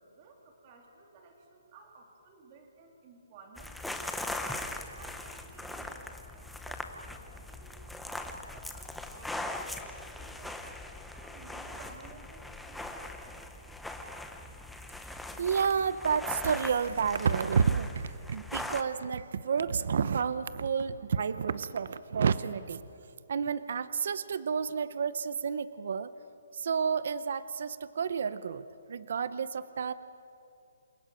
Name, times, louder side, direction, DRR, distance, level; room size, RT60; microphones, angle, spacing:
voice 1, 0.0-4.2 4.9-10.6 11.1-13.1, right 4 dB, 25° right, 2 dB, 3.0 m, -56 dB
sound 1, 3.6-18.8, left 1 dB, ahead, 0.8 m, -40 dB
voice 2, 15.4-22.8 23.3-26.1 26.5-29.9, right 6 dB, 50° right, 15 dB, 0.7 m, -30 dB
28.0 x 17.0 x 9.0 m, 2.6 s
hypercardioid pair, 175°, 0 cm